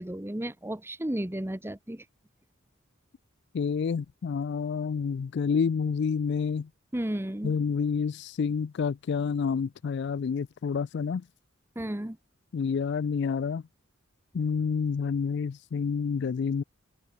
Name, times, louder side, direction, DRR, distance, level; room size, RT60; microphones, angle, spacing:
voice 1, 0.0-2.0 6.9-7.5 11.8-12.2, right 1 dB, 10° right, 0.9 m, -33 dB
voice 2, 3.5-6.7 7.4-11.2 12.5-13.6 14.3-16.6, left 6 dB, 55° left, 0.3 m, -28 dB
head